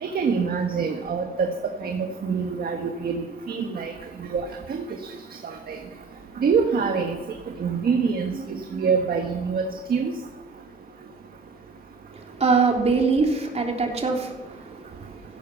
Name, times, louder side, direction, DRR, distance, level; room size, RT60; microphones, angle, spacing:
voice 1, 0.0-3.9 4.3-4.4 4.7-4.8 5.4-5.8 6.4-7.2 7.6-10.1, right 5 dB, 70° right, 3 dB, 1.5 m, -25 dB
voice 2, 12.1-14.7, right 4 dB, 45° right, 1 dB, 3.4 m, -23 dB
16.0 x 12.5 x 5.8 m, 1.1 s
wide cardioid pair, 110°, 16 cm